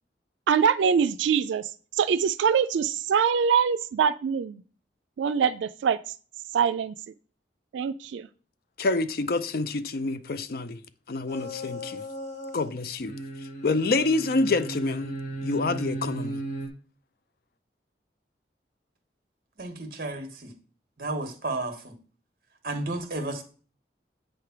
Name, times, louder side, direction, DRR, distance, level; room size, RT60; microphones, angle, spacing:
voice 1, 0.5-1.7 2.0-4.6 5.2-6.0 6.5-7.0 7.7-8.3, right 7 dB, 90° right, 0.3 m, -23 dB
voice 2, 8.8-10.8 11.1-12.0 12.5-13.1 13.6-15.1 15.4-16.4, left 3 dB, 55° left, 0.4 m, -27 dB
sound 1, 11.3-12.7 13.0-16.7, right 1 dB, 40° left, 1.5 m, -36 dB
voice 3, 19.6-20.5 21.0-21.9 22.6-23.4, right 2 dB, 55° right, 1.2 m, -32 dB
8.3 x 3.3 x 5.8 m
head